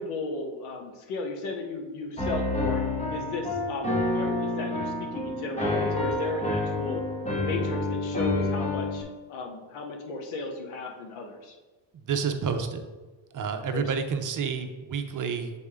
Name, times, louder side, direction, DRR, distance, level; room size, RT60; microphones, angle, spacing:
voice 1, 0.0-2.8 3.1-7.0 7.4-11.6 13.7-13.8, left 3 dB, 85° left, 3 dB, 1.1 m, -35 dB
Piano, 2.2-9.0, left 2 dB, 15° left, 1.0 m, -28 dB
voice 2, 11.9-12.9 13.3-15.5, right 6 dB, 40° right, 7 dB, 0.7 m, -29 dB
6.7 x 4.2 x 3.6 m, 1.2 s
cardioid pair, 100°, 48 cm